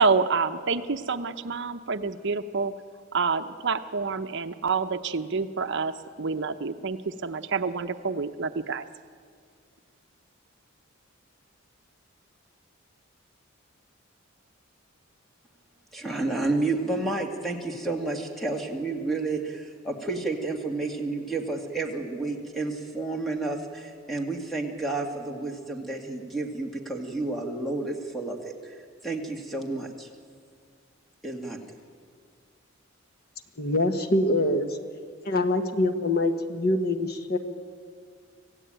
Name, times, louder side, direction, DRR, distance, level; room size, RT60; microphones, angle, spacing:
voice 1, 0.0-2.7 3.1-8.9, right 4 dB, 60° right, 9 dB, 0.8 m, -27 dB
voice 2, 15.9-30.1 31.2-31.7, right 2 dB, ahead, 1 dB, 2.3 m, -31 dB
voice 3, 33.6-34.8 35.2-37.4, left 1 dB, 50° left, 7 dB, 1.4 m, -24 dB
26.0 x 16.0 x 9.1 m, 2.1 s
head